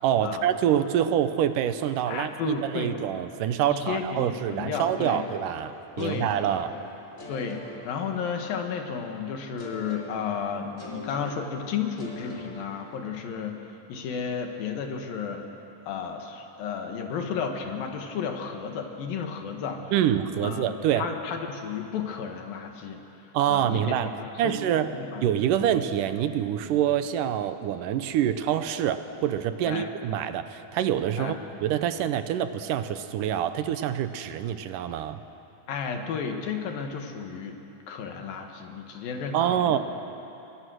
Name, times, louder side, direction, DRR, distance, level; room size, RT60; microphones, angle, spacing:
voice 1, 0.0-6.7 19.9-21.1 23.3-24.1 24.4-24.9 25.2-35.2 39.3-39.8, right 10 dB, 75° right, 11 dB, 2.3 m, -26 dB
voice 2, 2.1-3.0 3.7-5.2 6.0-6.3 7.3-15.4 15.9-19.8 20.4-23.0 23.5-24.6 24.9-25.2 25.5-25.6 29.7-29.9 31.2-31.3 35.7-37.6 37.9-39.8, left 6 dB, 85° left, 4 dB, 3.4 m, -33 dB
sound 1, 4.8-8.7 9.6-13.4, left 1 dB, 20° left, 3.4 m, -44 dB
28.0 x 22.5 x 6.4 m, 2.9 s
omnidirectional pair, 4.0 m